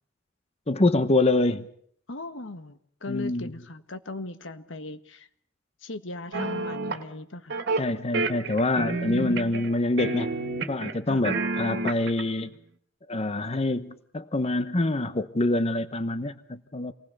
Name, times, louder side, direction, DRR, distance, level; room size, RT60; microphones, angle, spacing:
voice 1, 0.7-1.7 3.1-3.5 7.8-10.4 10.7-12.5 13.1-16.9, left 2 dB, 35° left, 12 dB, 1.0 m, -26 dB
voice 2, 2.1-5.3 5.8-7.6 8.8-9.5 11.1-11.2, left 2 dB, 80° left, 10 dB, 1.6 m, -37 dB
sound 1, 6.3-7.0 7.5-7.9 8.1-9.7 10.0-10.9 11.2-12.2, right 3 dB, 65° right, 1.9 m, -29 dB
28.0 x 19.5 x 6.6 m, 0.62 s
head